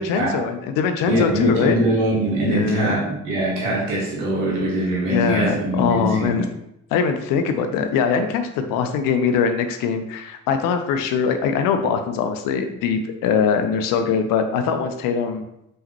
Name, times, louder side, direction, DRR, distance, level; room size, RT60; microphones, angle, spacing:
voice 1, 0.0-1.8 2.5-3.0 5.1-6.5 6.9-15.4, left 6 dB, 55° left, 7 dB, 0.6 m, -22 dB
voice 2, 1.1-6.4, right 1 dB, 75° right, -4 dB, 1.4 m, -22 dB
5.6 x 3.2 x 2.9 m, 0.82 s
figure-of-eight pair, 40°, 39 cm